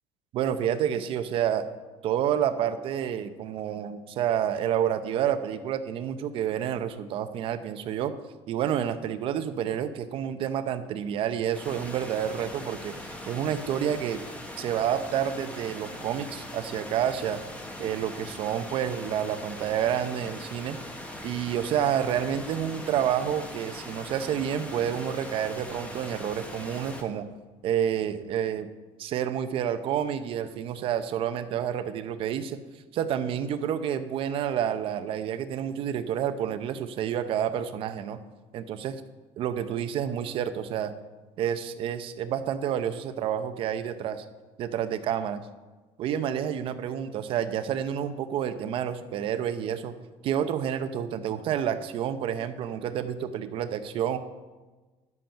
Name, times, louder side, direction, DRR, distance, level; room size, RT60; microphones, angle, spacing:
voice 1, 0.3-1.7 2.0-8.1 8.5-13.0 13.3-14.2 14.6-17.4 17.8-20.8 21.2-27.3 27.6-28.7 29.0-32.6 32.9-38.2 38.5-39.0 39.4-40.9 41.4-44.2 44.6-45.4 46.0-49.9 50.2-54.2, right 9 dB, 55° right, 10 dB, 0.7 m, -29 dB
sound 1, 11.5-27.0, left 1 dB, 10° left, 1.2 m, -41 dB
11.0 x 7.8 x 5.7 m, 1.2 s
cardioid pair, 150°, 11 cm